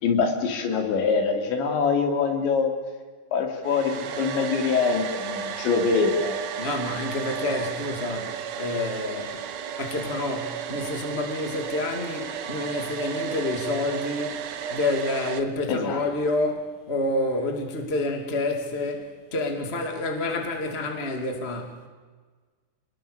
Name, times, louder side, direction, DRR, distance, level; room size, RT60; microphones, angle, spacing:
voice 1, 0.0-2.7 3.3-6.6 15.7-16.0, left 5 dB, 80° left, 5.3 m, -24 dB
Domestic sounds home sounds, 3.6-15.4, right 8 dB, 85° right, 1.5 m, -33 dB
voice 2, 6.6-9.4 9.8-14.4 14.7-21.9, left 2 dB, 20° left, 2.2 m, -28 dB
29.5 x 21.0 x 6.9 m
omnidirectional pair, 5.2 m